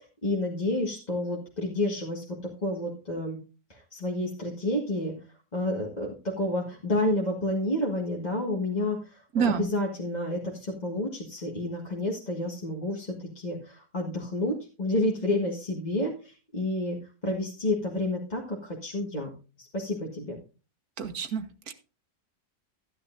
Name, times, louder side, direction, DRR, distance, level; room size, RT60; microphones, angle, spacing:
voice 1, 0.2-3.4 3.7-5.2 5.5-17.0 17.2-19.3 19.6-20.4, left 1 dB, 30° left, -2 dB, 1.8 m, -30 dB
voice 2, 9.4-9.7 21.0-21.7, right 7 dB, 70° right, 9 dB, 1.6 m, -28 dB
14.0 x 10.0 x 2.6 m, 0.33 s
omnidirectional pair, 1.6 m